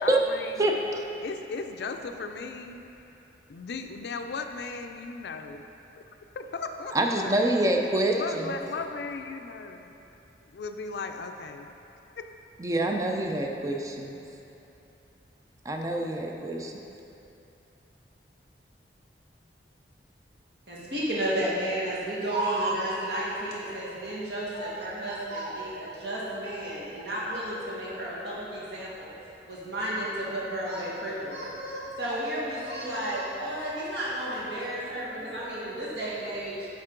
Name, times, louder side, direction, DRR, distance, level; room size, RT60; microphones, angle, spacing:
voice 1, 0.0-0.8 1.2-2.8 3.5-5.6 6.0-6.1 6.3-7.6 8.1-9.9 10.5-11.7 12.2-12.3, left 4 dB, 60° left, 6 dB, 0.4 m, -37 dB
voice 2, 0.6-1.0 6.9-8.5 12.6-14.2 15.6-16.7, right 1 dB, 20° right, 2 dB, 0.4 m, -26 dB
voice 3, 20.7-29.1 29.4-36.7, right 1 dB, 65° right, -7 dB, 1.5 m, -32 dB
8.9 x 3.6 x 3.7 m, 2.9 s
head